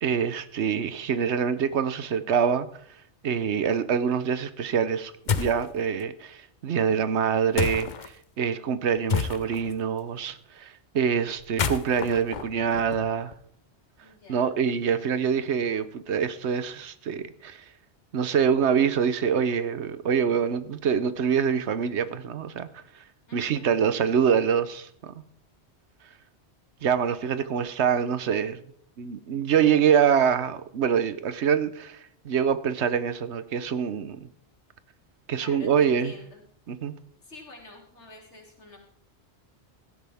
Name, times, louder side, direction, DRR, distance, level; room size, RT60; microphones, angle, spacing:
voice 1, 0.0-2.7 3.2-13.3 14.3-17.6 18.1-22.7 23.3-25.2 26.8-28.6 29.0-34.3 35.3-36.1 36.7-36.9, right 7 dB, 75° right, 1.1 m, -25 dB
sound 1, 5.3-5.7 7.6-8.1 9.1-9.7 11.4-13.3, left 7 dB, 45° left, 0.8 m, -29 dB
voice 2, 14.0-14.6 23.3-23.7 35.4-36.5 37.2-38.8, left 3 dB, 90° left, 3.5 m, -48 dB
16.0 x 12.5 x 3.5 m
omnidirectional pair, 1.2 m